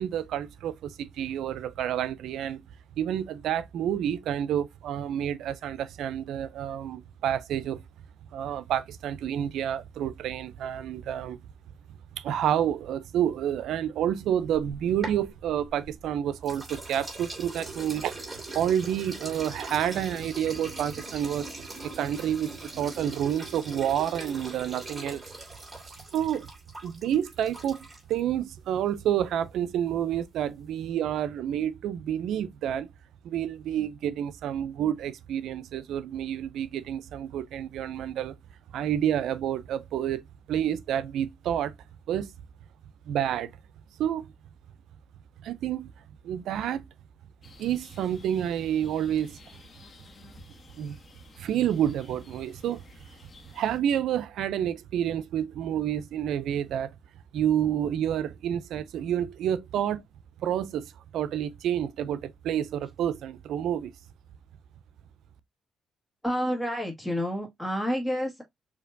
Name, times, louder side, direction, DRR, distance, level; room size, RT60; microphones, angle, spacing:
voice 1, 0.0-2.6 3.0-7.8 8.3-11.4 12.1-21.5 21.8-25.2 26.1-26.5 26.8-32.9 33.2-38.3 38.7-40.2 40.5-41.7 42.1-42.3 43.1-43.5 44.0-44.2 45.4-45.9 46.2-46.9 47.6-49.4 50.8-51.0 51.4-52.8 53.5-56.9 57.3-60.0 60.4-63.9, right 10 dB, 80° right, 0.4 m, -29 dB
sound 1, 14.5-16.0 16.4-28.2, right 2 dB, 20° right, 2.5 m, -41 dB
sound 2, 47.4-53.8, left 3 dB, 40° left, 1.5 m, -53 dB
voice 2, 66.2-68.4, equal, 5° left, 1.8 m, -29 dB
6.4 x 2.9 x 2.6 m
cardioid pair, 90°, 0 cm